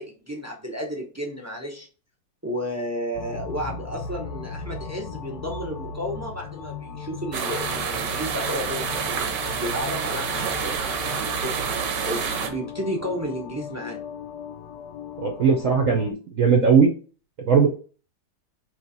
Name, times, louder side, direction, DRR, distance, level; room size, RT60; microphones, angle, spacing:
voice 1, 0.0-1.9 2.4-8.9 9.6-11.7 12.1-14.0, equal, 15° right, 1 dB, 0.5 m, -32 dB
sound 1, 3.1-16.1, left 5 dB, 75° left, 1.1 m, -37 dB
sound 2, 7.3-12.5, right 6 dB, 85° right, 1.4 m, -28 dB
voice 2, 15.2-16.9 17.4-17.7, right 5 dB, 60° right, 1 dB, 1.0 m, -18 dB
3.3 x 3.2 x 4.0 m, 0.37 s
omnidirectional pair, 1.8 m